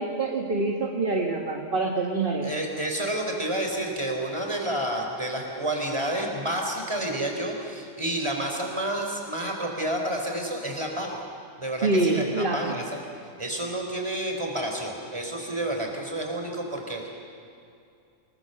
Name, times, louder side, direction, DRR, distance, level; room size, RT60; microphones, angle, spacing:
voice 1, 0.0-2.5 11.8-12.7, right 2 dB, 45° right, 1 dB, 1.9 m, -25 dB
voice 2, 2.4-11.2 11.6-13.0 13.4-17.1, right 1 dB, 20° right, 2 dB, 3.9 m, -30 dB
26.0 x 20.5 x 7.9 m, 2.5 s
omnidirectional pair, 1.3 m